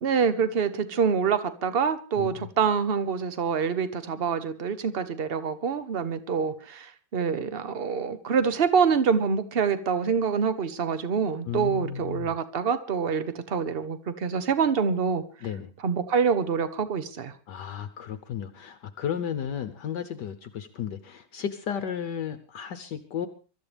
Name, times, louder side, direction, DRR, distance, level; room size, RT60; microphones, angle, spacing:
voice 1, 0.0-15.2 15.8-17.3, right 6 dB, 40° right, 12 dB, 0.9 m, -26 dB
voice 2, 11.5-12.3 15.4-15.7 17.5-23.3, left 8 dB, 65° left, 9 dB, 1.4 m, -33 dB
24.0 x 13.0 x 3.4 m, 0.36 s
omnidirectional pair, 2.2 m